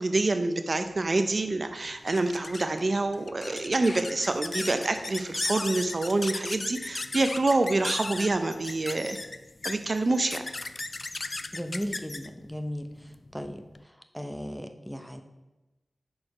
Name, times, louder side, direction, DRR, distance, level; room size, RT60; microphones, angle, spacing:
voice 1, 0.0-9.2 9.6-10.4, right 2 dB, 50° right, 8 dB, 0.5 m, -27 dB
sound 1, 0.9-13.8, left 2 dB, 50° left, 0.3 m, -37 dB
voice 2, 11.5-12.9 13.3-13.6 14.1-15.2, equal, ahead, 7 dB, 0.7 m, -35 dB
6.3 x 4.7 x 4.8 m, 1.1 s
cardioid pair, 50°, 0 cm